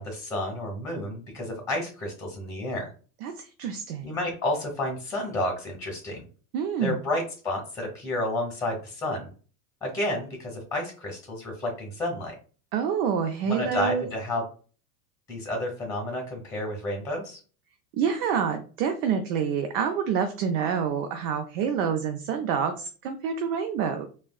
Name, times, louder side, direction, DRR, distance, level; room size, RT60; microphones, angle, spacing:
voice 1, 0.0-2.9 4.0-6.2 6.8-9.3 9.8-12.3 13.4-14.4 15.3-17.4, left 1 dB, 5° left, 0 dB, 1.1 m, -31 dB
voice 2, 3.2-4.1 6.5-7.0 12.7-14.1 17.9-24.1, right 7 dB, 60° right, 6 dB, 0.6 m, -27 dB
3.4 x 2.1 x 2.3 m, 0.39 s
hypercardioid pair, 95°, 44 cm